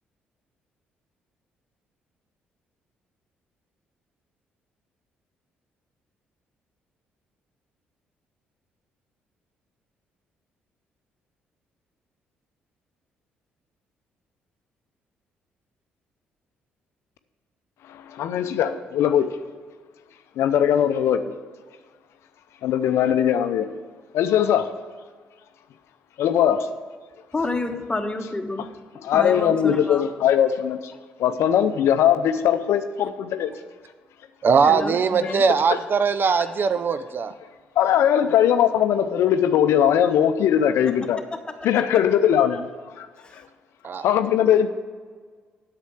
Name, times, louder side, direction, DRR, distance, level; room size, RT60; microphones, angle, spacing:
voice 1, 18.1-19.3 20.4-21.2 22.6-23.7 24.1-24.7 26.2-26.7 29.0-30.8 31.2-33.5 35.2-35.5 37.8-41.2 41.6-42.7 43.0-43.1 44.0-44.7, left 9 dB, 65° left, 10 dB, 0.5 m, -20 dB
voice 2, 27.3-30.1 34.6-35.4 36.4-36.5 43.2-43.4, left 2 dB, 20° left, 5 dB, 1.2 m, -30 dB
voice 3, 34.4-37.3 43.8-44.0, right 5 dB, 45° right, 12 dB, 0.6 m, -20 dB
8.2 x 6.7 x 7.4 m, 1.5 s
hypercardioid pair, 45°, 5 cm